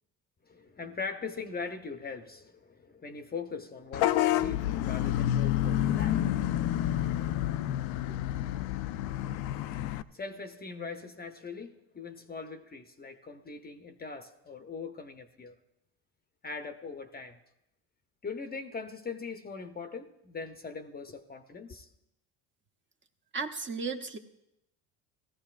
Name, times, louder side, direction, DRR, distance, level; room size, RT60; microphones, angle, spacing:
voice 1, 0.5-6.2 8.1-8.2 10.1-15.6 16.4-17.4 18.2-21.9, left 4 dB, 25° left, 0.7 m, -41 dB
Vehicle horn car horn honking / Bus, 3.9-10.0, left 12 dB, 65° left, 0.5 m, -29 dB
voice 2, 23.3-24.2, right 4 dB, 30° right, 0.9 m, -34 dB
17.5 x 14.0 x 2.5 m
supercardioid pair, 75°, 40 cm